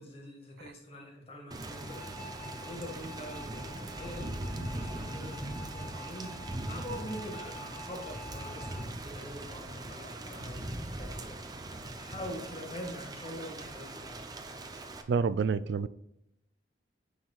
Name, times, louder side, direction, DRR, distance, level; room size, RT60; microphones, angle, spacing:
voice 1, 0.0-6.4 6.7-14.2, equal, 35° left, 1.8 m, -44 dB
Thunder / Rain, 1.5-15.0, right 1 dB, 20° right, 0.6 m, -41 dB
sound 1, 1.7-8.9, left 1 dB, 10° left, 1.3 m, -49 dB
voice 2, 15.1-15.9, right 5 dB, 70° right, 0.3 m, -28 dB
9.1 x 4.8 x 2.4 m
head